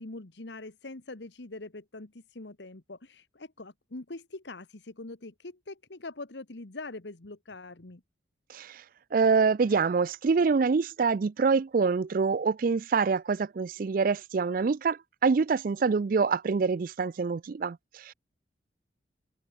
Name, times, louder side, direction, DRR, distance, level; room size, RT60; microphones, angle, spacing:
voice 1, 0.0-8.0, left 2 dB, 70° left, 1.4 m, -43 dB
voice 2, 8.5-8.8 9.1-18.1, right 5 dB, 50° right, 0.4 m, -26 dB
head